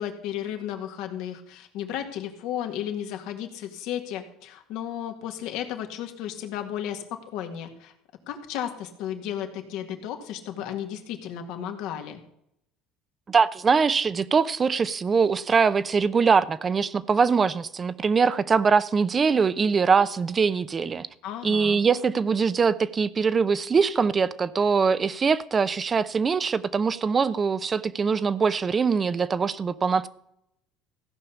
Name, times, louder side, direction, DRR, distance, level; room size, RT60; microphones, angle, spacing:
voice 1, 0.0-7.9 8.3-12.2 21.2-21.8, left 10 dB, 70° left, 2.0 m, -34 dB
voice 2, 13.3-21.1 21.4-30.1, right 5 dB, 30° right, 0.7 m, -22 dB
15.5 x 5.6 x 8.4 m
supercardioid pair, 95°, 0 cm